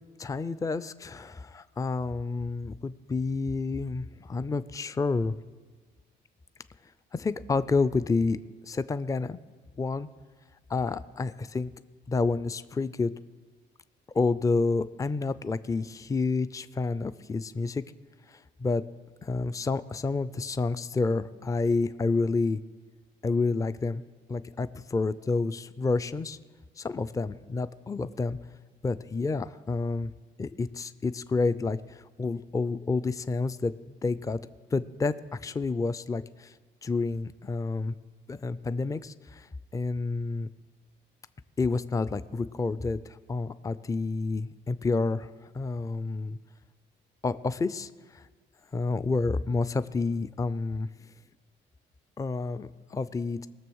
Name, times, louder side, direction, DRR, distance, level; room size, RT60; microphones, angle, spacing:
voice 1, 0.2-5.3 7.1-8.4 8.6-9.4 9.8-10.1 10.7-11.7 12.1-13.1 14.1-17.8 18.3-18.8 19.2-22.6 23.2-24.0 24.3-26.4 26.8-28.4 28.8-30.1 30.4-33.7 34.0-34.4 34.7-36.5 36.8-37.9 38.3-40.5 41.6-45.3 45.5-46.4 47.2-48.3 48.7-51.1 52.2-53.5, left 3 dB, 15° left, 14 dB, 0.4 m, -29 dB
20.0 x 7.0 x 6.3 m, 1.4 s
cardioid pair, 90°, 20 cm